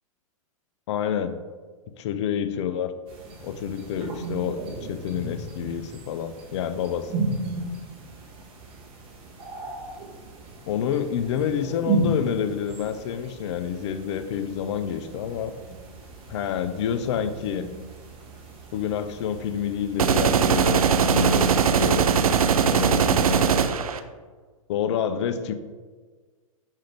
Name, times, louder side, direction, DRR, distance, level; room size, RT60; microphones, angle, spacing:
voice 1, 0.9-1.4 2.0-2.9 3.4-7.2 10.7-15.5 16.3-17.7 18.7-22.1 22.7-23.5 24.7-25.5, left 8 dB, 50° left, 10 dB, 0.5 m, -28 dB
sound 1, 3.1-20.2, right 2 dB, 30° right, 1.4 m, -35 dB
sound 2, 20.0-24.0, right 7 dB, 80° right, 0.4 m, -20 dB
5.6 x 5.0 x 3.4 m, 1.5 s
hypercardioid pair, 110°, 18 cm